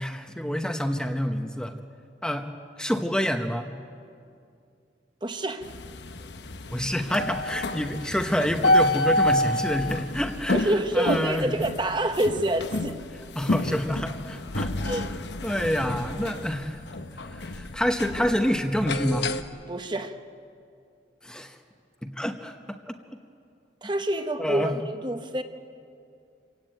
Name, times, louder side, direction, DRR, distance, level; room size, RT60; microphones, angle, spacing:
voice 1, 0.0-1.8 2.2-2.5 2.8-3.7 6.7-11.5 13.3-15.0 15.4-16.8 17.3-19.3 21.2-21.6 22.0-22.8 24.4-24.7, equal, 5° left, 5 dB, 0.9 m, -28 dB
voice 2, 5.2-5.7 10.5-13.0 14.8-15.1 19.7-20.2 23.8-25.4, right 1 dB, 25° right, 7 dB, 1.1 m, -27 dB
sound 1, 5.6-19.4, left 1 dB, 75° left, 1.0 m, -29 dB
28.0 x 16.5 x 9.1 m, 2.4 s
head